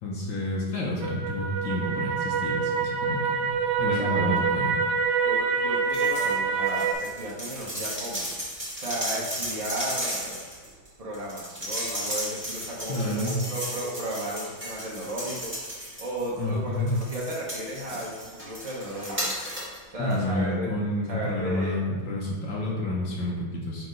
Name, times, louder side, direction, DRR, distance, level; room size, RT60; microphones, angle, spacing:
voice 1, 0.0-3.5 3.8-4.7 12.9-13.5 16.4-17.0 20.0-23.9, left 1 dB, 80° left, -4 dB, 1.6 m, -29 dB
sound 1, 1.0-6.9, right 6 dB, 90° right, 1.5 m, -26 dB
voice 2, 3.9-4.4 5.2-8.3 8.7-10.4 11.0-15.5 16.0-19.3 19.9-20.7 21.1-21.9, right 1 dB, 35° right, -5 dB, 0.6 m, -34 dB
sound 2, 5.9-6.3 6.6-16.4 16.9-19.8 20.1-20.2, equal, 5° right, 1.2 m, -35 dB
5.2 x 4.7 x 3.8 m, 1.4 s
omnidirectional pair, 2.1 m